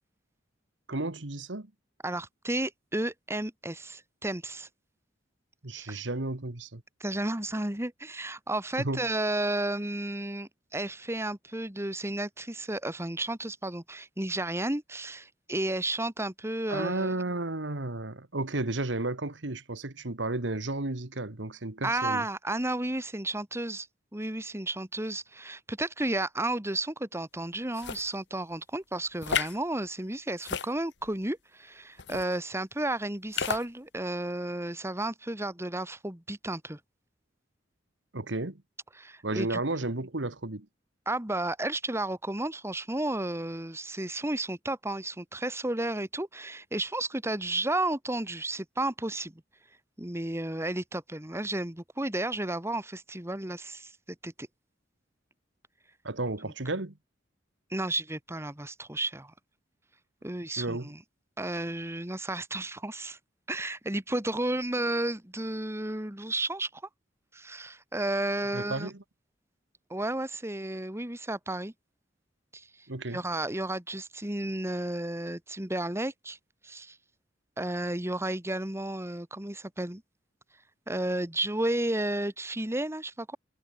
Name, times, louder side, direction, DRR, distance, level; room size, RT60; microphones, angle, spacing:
voice 1, 0.9-1.7 5.6-6.8 8.8-9.0 16.7-22.3 38.1-38.6 39.2-40.7 56.0-56.9 60.6-60.9 68.5-69.0 72.9-73.2, right 2 dB, 70° right, 1.7 m, -33 dB
voice 2, 2.0-4.7 5.7-6.0 7.0-17.1 21.8-23.9 24.1-36.8 39.0-39.6 41.1-49.4 50.0-53.9 54.2-54.5 56.4-56.5 57.7-59.3 60.2-61.0 61.4-63.2 63.5-66.8 67.3-68.9 69.9-71.7 72.5-72.7 73.1-76.4 76.6-77.0 77.6-80.0 80.9-83.4, right 1 dB, 15° right, 2.1 m, -32 dB
sound 1, 27.7-28.1 29.2-29.6 30.4-31.1 32.0-32.3 33.3-33.6, left 6 dB, 65° left, 1.3 m, -32 dB
head